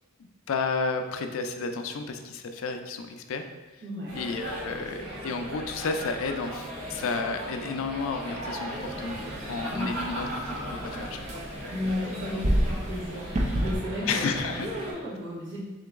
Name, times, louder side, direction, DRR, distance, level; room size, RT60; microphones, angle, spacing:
voice 1, 0.5-3.8 4.1-9.2 9.4-10.3 10.8-11.2 14.1-14.7, left 4 dB, 65° left, 6 dB, 0.3 m, -31 dB
voice 2, 3.8-4.2 9.7-10.1 11.7-15.6, left 1 dB, 55° right, -7 dB, 1.3 m, -34 dB
sound 1, 4.1-14.9, equal, 85° right, 1.3 m, -37 dB
sound 2, 8.7-13.8, equal, 30° right, 0.5 m, -31 dB
3.8 x 2.9 x 3.5 m, 1.1 s
head